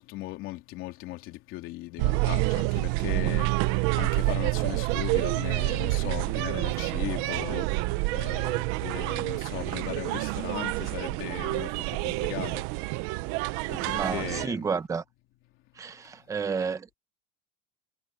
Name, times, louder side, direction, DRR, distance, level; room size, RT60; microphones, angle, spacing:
voice 1, 0.0-12.9 13.7-14.7, left 17 dB, 45° left, 3.4 m, -38 dB
sound 1, 2.0-14.5, right 22 dB, 50° right, 0.8 m, -28 dB
voice 2, 13.7-15.0 15.8-16.9, right 5 dB, 10° right, 0.9 m, -31 dB
cardioid pair, 175°, 29 cm